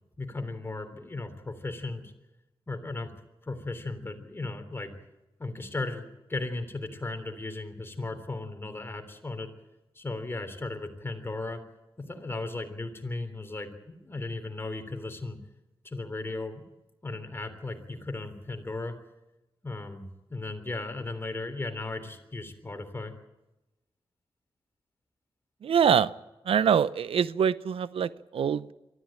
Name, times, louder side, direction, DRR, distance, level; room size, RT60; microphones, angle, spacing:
voice 1, 0.2-2.1 2.7-3.1 3.4-4.9 5.4-9.5 9.9-11.6 12.1-15.4 15.8-16.6 17.0-18.9 19.6-23.1, left 2 dB, 25° left, 7 dB, 3.5 m, -36 dB
voice 2, 25.6-26.1 26.5-28.7, right 8 dB, 85° right, 17 dB, 0.7 m, -24 dB
23.5 x 14.0 x 8.9 m, 0.99 s
wide cardioid pair, 100°, 9 cm